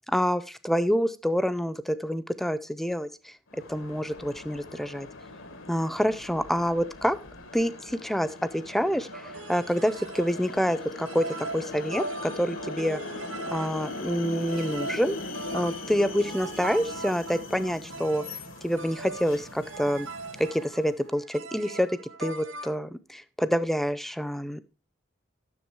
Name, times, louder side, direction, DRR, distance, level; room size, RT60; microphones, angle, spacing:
voice 1, 0.1-5.1 5.7-7.2 7.5-13.0 13.5-15.2 15.5-18.2 18.6-20.1 20.4-24.6, equal, ahead, 15 dB, 0.4 m, -27 dB
sound 1, 3.5-21.0, left 3 dB, 85° left, 1.3 m, -40 dB
sound 2, 9.1-22.8, right 3 dB, 75° right, 0.9 m, -40 dB
10.5 x 6.7 x 4.6 m, 0.32 s
head